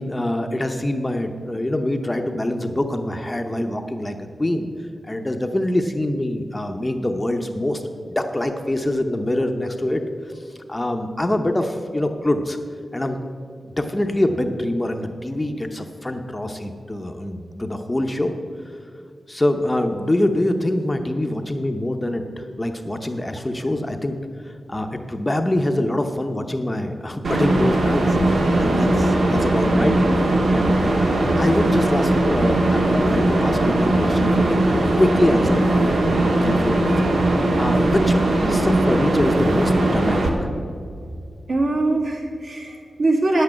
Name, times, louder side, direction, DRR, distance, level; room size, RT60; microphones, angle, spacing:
voice 1, 0.0-4.7 5.0-7.8 8.2-12.6 12.9-13.2 13.6-18.4 19.3-24.1 24.4-34.7 35.0-36.9 37.2-40.5, left 1 dB, 15° left, 5 dB, 0.7 m, -24 dB
sound 1, 27.2-40.3, right 1 dB, 75° right, 1.6 m, -19 dB
voice 2, 41.5-43.4, right 2 dB, 60° right, -1 dB, 2.0 m, -22 dB
9.7 x 8.4 x 7.6 m, 2.3 s
wide cardioid pair, 130°, 0 cm